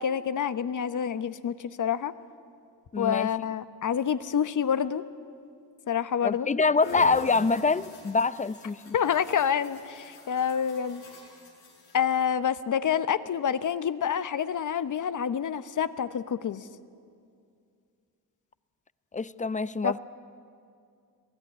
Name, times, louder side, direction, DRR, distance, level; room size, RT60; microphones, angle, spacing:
voice 1, 0.0-2.1 3.0-5.0 5.9-6.5 8.9-11.0 11.9-16.7 19.8-20.0, left 8 dB, 55° left, 13 dB, 1.0 m, -27 dB
voice 2, 2.9-3.3 6.2-8.9 19.1-20.0, left 4 dB, 20° left, 17 dB, 0.6 m, -25 dB
sound 1, 6.8-12.2, left 2 dB, 90° left, 5.3 m, -45 dB
26.0 x 17.5 x 10.0 m, 2.3 s
cardioid pair, 95°, 37 cm